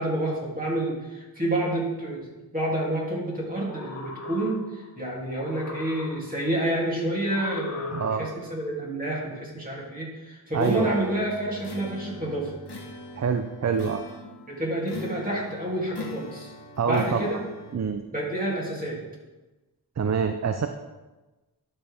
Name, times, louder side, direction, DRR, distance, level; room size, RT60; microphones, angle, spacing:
voice 1, 0.0-2.3 2.5-12.5 14.5-16.5 16.8-17.4 18.1-19.0, right 1 dB, 20° right, -4 dB, 2.8 m, -29 dB
sound 1, 3.5-4.9 5.3-6.5 7.3-8.6, left 2 dB, 40° left, 0.9 m, -38 dB
voice 2, 7.9-8.3 10.5-11.0 13.2-14.0 16.8-17.3 17.7-18.0 20.0-20.7, right 6 dB, 45° right, 7 dB, 0.5 m, -26 dB
sound 2, 10.6-17.8, left 1 dB, 80° left, 1.3 m, -41 dB
11.0 x 6.5 x 3.5 m, 1.1 s
wide cardioid pair, 75°, 39 cm